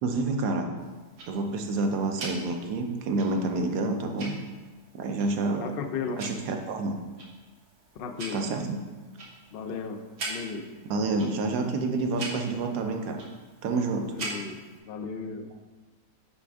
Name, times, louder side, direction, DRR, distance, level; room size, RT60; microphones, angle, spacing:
voice 1, 0.0-0.7 1.3-4.4 4.9-5.7 6.2-7.0 8.3-8.8 10.9-13.2 13.6-14.1, right 3 dB, 90° right, 4 dB, 1.3 m, -28 dB
Tick-tock, 0.8-14.8, right 2 dB, 65° right, 1.6 m, -43 dB
voice 2, 5.6-6.2 8.0-8.4 9.5-10.7 14.1-14.6 14.9-15.5, left 5 dB, 85° left, 6 dB, 0.5 m, -35 dB
10.0 x 3.4 x 3.4 m, 1.3 s
omnidirectional pair, 1.7 m